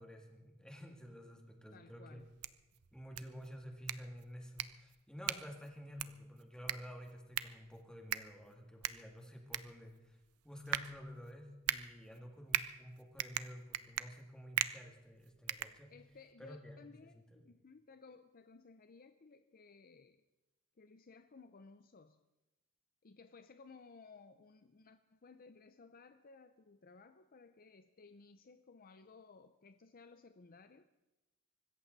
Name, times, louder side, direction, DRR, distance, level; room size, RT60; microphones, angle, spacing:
voice 1, 0.0-2.2 2.9-10.2 10.4-15.9 16.4-16.8 17.1-17.4, equal, 5° left, 2.2 m, -51 dB
voice 2, 1.7-2.3 15.9-20.2 20.8-22.2 23.0-30.9, left 4 dB, 40° left, 0.6 m, -59 dB
snap fingers, 2.2-16.3, right 11 dB, 80° right, 0.6 m, -42 dB
24.5 x 14.0 x 4.1 m
head